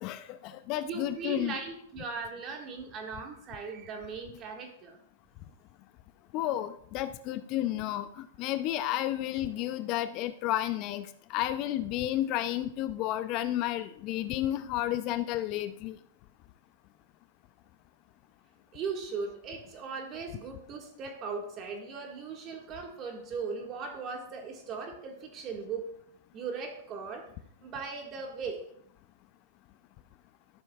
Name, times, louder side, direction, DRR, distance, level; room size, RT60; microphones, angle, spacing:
voice 1, 0.0-1.6 6.3-16.0, left 13 dB, 40° left, 12 dB, 0.4 m, -32 dB
voice 2, 0.8-4.9 18.7-25.9 26.3-27.2 27.6-28.6, right 5 dB, 35° right, 3 dB, 1.7 m, -38 dB
12.5 x 6.8 x 2.4 m, 0.69 s
hypercardioid pair, 125°, 0 cm